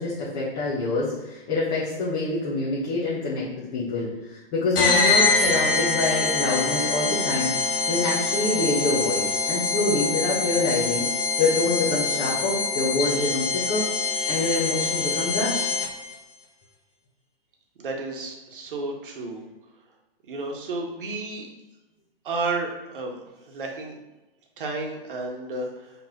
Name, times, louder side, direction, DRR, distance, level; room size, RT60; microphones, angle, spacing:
voice 1, 0.0-11.0 11.4-13.9 14.3-15.7, left 2 dB, 25° left, -7 dB, 1.4 m, -26 dB
sound 1, 4.7-16.1, left 4 dB, 65° left, 1.5 m, -25 dB
voice 2, 17.8-19.4 20.3-21.5 22.2-23.2 23.5-24.0 24.6-25.9, right 3 dB, 60° right, 1 dB, 1.7 m, -32 dB
5.7 x 3.7 x 5.9 m, 1.0 s
hypercardioid pair, 155°, 30 cm